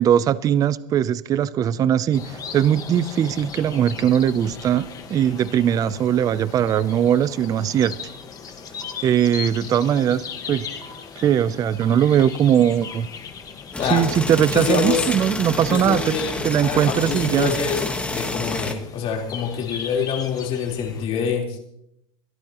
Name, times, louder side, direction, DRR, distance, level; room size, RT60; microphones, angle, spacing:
voice 1, 0.0-8.0 9.0-10.2 10.5-10.7 11.2-13.1 13.9-16.2 16.4-17.5, right 9 dB, 20° right, 17 dB, 0.4 m, -20 dB
sound 1, 2.1-21.0, left 6 dB, 25° left, 1.4 m, -38 dB
sound 2, 8.8-8.9 9.8-9.9 10.8-10.9 11.8-11.9 12.8-12.9 13.8-13.9 14.8-14.9 15.8-15.9 16.8-16.9 17.8-17.9, right 1 dB, 85° right, 1.8 m, -43 dB
sound 3, 13.7-18.7, left 2 dB, 5° left, 1.3 m, -28 dB
voice 2, 14.5-15.1 15.7-21.6, left 6 dB, 40° left, 0 dB, 3.7 m, -26 dB
22.0 x 13.0 x 3.0 m, 0.77 s
supercardioid pair, 145°, 16 cm